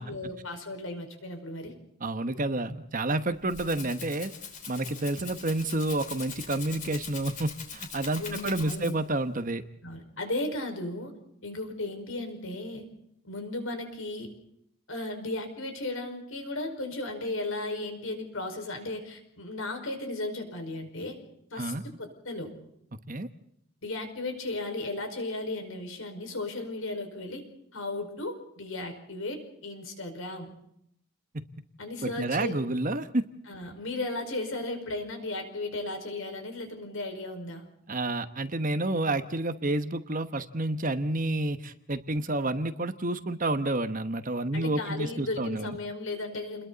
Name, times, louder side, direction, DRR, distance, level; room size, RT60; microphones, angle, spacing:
voice 1, 0.0-1.7 8.2-9.0 9.8-11.1 11.4-12.9 13.2-14.3 14.9-21.2 21.5-22.5 23.8-27.4 27.7-30.5 31.8-32.5 33.5-37.7 44.5-46.7, left 2 dB, 70° left, 5 dB, 5.2 m, -35 dB
voice 2, 2.0-4.3 4.7-9.6 21.6-21.8 23.1-23.3 31.3-31.4 32.0-33.2 37.9-45.8, right 2 dB, 40° right, 10 dB, 1.1 m, -29 dB
Rattle (instrument), 3.2-9.2, left 6 dB, 35° left, 3.2 m, -42 dB
29.5 x 21.5 x 4.1 m, 0.73 s
head